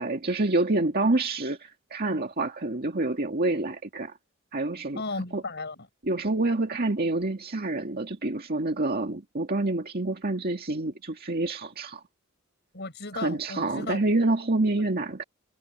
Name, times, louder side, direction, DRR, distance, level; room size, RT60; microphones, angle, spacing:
voice 1, 0.0-4.1 4.5-5.0 5.3-5.4 6.1-12.0 13.1-15.2, right 2 dB, 50° right, 2.0 m, -27 dB
voice 2, 4.9-5.9 12.7-14.0, left 3 dB, 55° left, 7.7 m, -35 dB
head